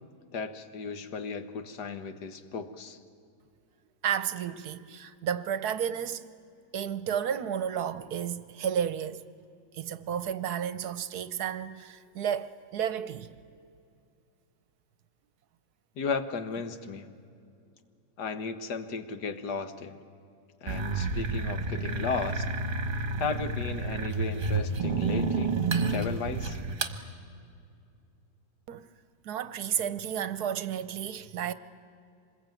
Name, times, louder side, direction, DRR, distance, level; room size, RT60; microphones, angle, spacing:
voice 1, 0.3-3.0 16.0-17.1 18.2-20.0 20.6-22.5 23.2-25.6 25.9-26.6, left 4 dB, 70° left, 1.8 m, -35 dB
voice 2, 4.0-6.2 6.7-9.2 9.8-13.3 28.7-28.9 29.2-31.5, right 9 dB, 65° right, 1.2 m, -32 dB
sound 1, 20.7-27.0, right 3 dB, 35° right, 1.3 m, -30 dB
25.5 x 21.0 x 9.2 m
omnidirectional pair, 1.9 m